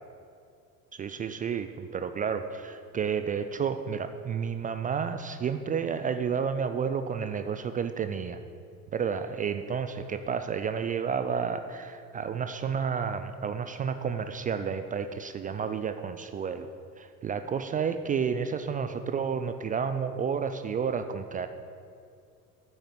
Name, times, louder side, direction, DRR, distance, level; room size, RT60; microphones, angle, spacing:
voice 1, 0.9-8.4 8.9-16.7 17.0-21.5, right 6 dB, 20° right, 9 dB, 0.3 m, -31 dB
9.7 x 6.6 x 7.4 m, 2.4 s
figure-of-eight pair, 65°, 46 cm